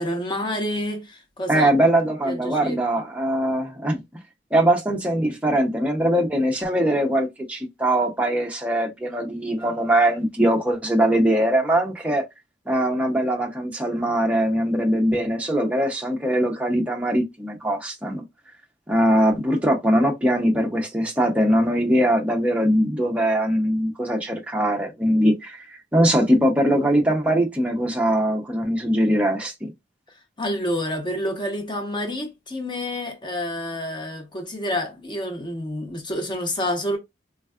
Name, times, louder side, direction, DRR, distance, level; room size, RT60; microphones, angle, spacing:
voice 1, 0.0-1.9 2.2-2.8 9.6-9.7 30.4-37.0, left 1 dB, 25° left, 0.7 m, -28 dB
voice 2, 1.5-4.0 4.5-12.3 12.7-18.2 18.9-29.7, right 1 dB, 5° right, 0.5 m, -21 dB
3.4 x 2.2 x 2.2 m
head